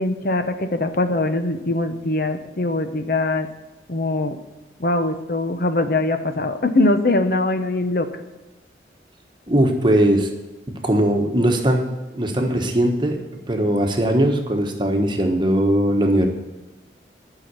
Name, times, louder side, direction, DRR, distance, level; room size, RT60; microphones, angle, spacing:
voice 1, 0.0-3.5 3.9-4.4 4.8-8.3, left 2 dB, 50° left, 8 dB, 0.8 m, -22 dB
voice 2, 9.5-10.3 10.7-11.8 12.1-13.2 13.5-16.3, right 1 dB, 25° right, 3 dB, 1.2 m, -19 dB
11.0 x 5.8 x 8.2 m, 1.1 s
head